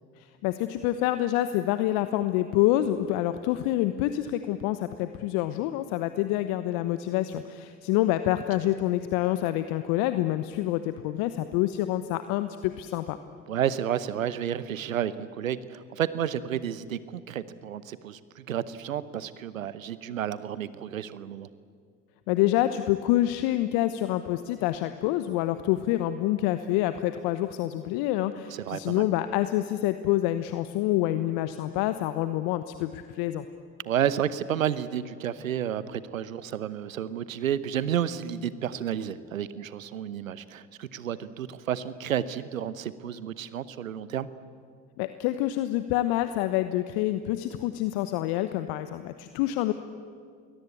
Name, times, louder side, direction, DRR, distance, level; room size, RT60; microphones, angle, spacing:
voice 1, 0.2-13.2 22.3-33.4 45.0-49.7, left 14 dB, 65° left, 11 dB, 1.1 m, -27 dB
voice 2, 13.5-21.5 28.5-29.1 33.8-44.3, right 9 dB, 90° right, 16 dB, 1.0 m, -31 dB
27.5 x 21.0 x 8.5 m, 2.1 s
hypercardioid pair, 60°, 39 cm